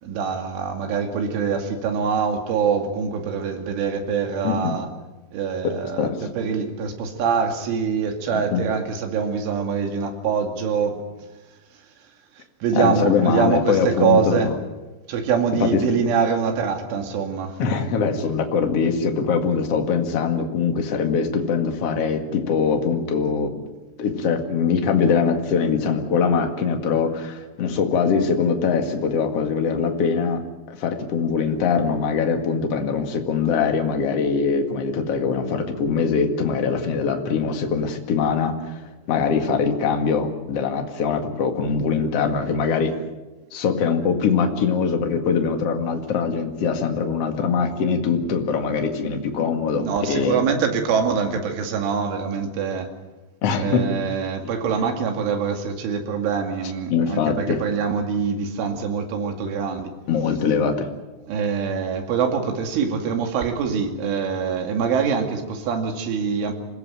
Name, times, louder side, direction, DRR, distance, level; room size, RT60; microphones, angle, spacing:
voice 1, 0.0-4.9 5.3-11.0 12.6-14.5 15.1-17.6 49.8-52.9 53.6-59.9 61.3-66.5, right 6 dB, 70° right, 4 dB, 4.7 m, -24 dB
voice 2, 5.6-6.3 8.3-8.6 12.7-14.6 15.6-15.8 17.6-23.6 24.0-30.4 30.7-42.9 43.5-50.4 53.4-54.0 56.9-57.6 60.1-60.9, left 6 dB, 55° left, 4 dB, 1.7 m, -22 dB
26.5 x 16.5 x 9.0 m, 1.1 s
omnidirectional pair, 6.0 m